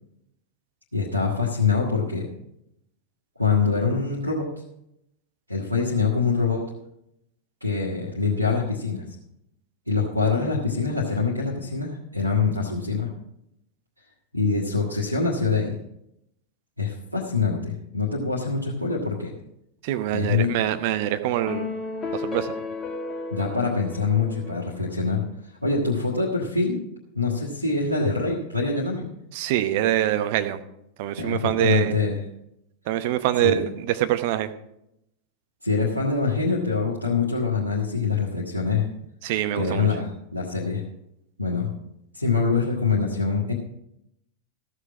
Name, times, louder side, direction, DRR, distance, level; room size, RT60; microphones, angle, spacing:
voice 1, 0.9-2.3 3.4-4.5 5.5-6.6 7.6-9.0 9.9-13.1 14.3-15.7 16.8-19.3 20.1-20.5 23.3-25.2 25.6-26.8 27.1-29.1 31.2-32.2 33.4-33.6 35.6-38.9 39.5-40.8 41.4-41.7 42.1-43.5, left 4 dB, 90° left, -5 dB, 1.4 m, -24 dB
voice 2, 19.8-21.7 22.1-22.5 29.3-30.6 31.0-31.9 32.9-34.5 39.2-39.9, right 13 dB, 50° right, 10 dB, 0.8 m, -24 dB
sound 1, 21.5-25.0, left 3 dB, 20° left, 1.1 m, -33 dB
14.0 x 6.5 x 6.0 m, 0.81 s
figure-of-eight pair, 90°, 0 cm